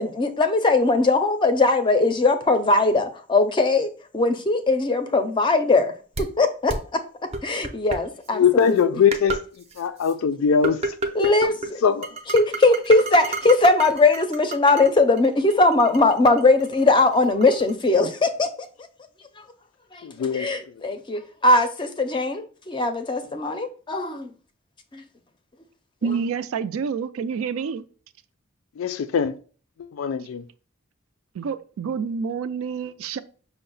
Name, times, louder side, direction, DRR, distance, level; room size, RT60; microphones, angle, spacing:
voice 1, 0.0-5.9 6.2-6.7 7.4-8.9 11.1-11.8 12.3-18.5 19.9-20.0 20.3-24.3 24.9-25.0, left 2 dB, 25° left, 0.4 m, -20 dB
sound 1, 6.2-6.3 6.7-6.8 7.3-8.0 8.7-8.8 9.1-9.4 9.7-10.1 10.6-11.7 12.0-14.9 15.2-17.7, right 2 dB, 30° right, 0.5 m, -29 dB
voice 2, 8.3-9.4 9.8-10.8 11.2-11.3 11.8-12.1 20.0-20.5 28.8-29.3 29.8-30.4, left 7 dB, 85° left, 0.4 m, -21 dB
voice 3, 26.0-27.8 31.3-33.2, right 6 dB, 90° right, 0.4 m, -28 dB
5.6 x 2.0 x 3.9 m
head